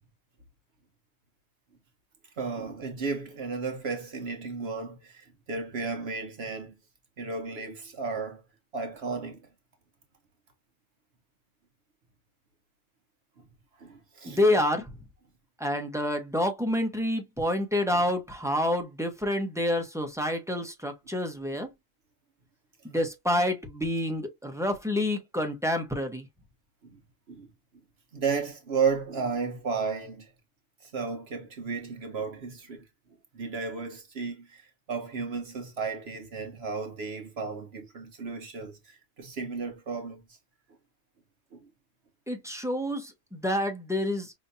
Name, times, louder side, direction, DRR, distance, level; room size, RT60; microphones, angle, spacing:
voice 1, 2.4-6.7 7.2-8.4 8.7-9.4 13.8-14.4 17.9-18.0 26.8-27.0 27.3-27.5 28.1-30.3 30.8-32.8 33.3-40.2, right 5 dB, 60° right, 1.1 m, -33 dB
voice 2, 14.3-14.9 15.6-21.7 22.8-26.3 42.3-44.3, left 1 dB, 5° right, 0.9 m, -28 dB
5.4 x 2.8 x 2.6 m
omnidirectional pair, 1.2 m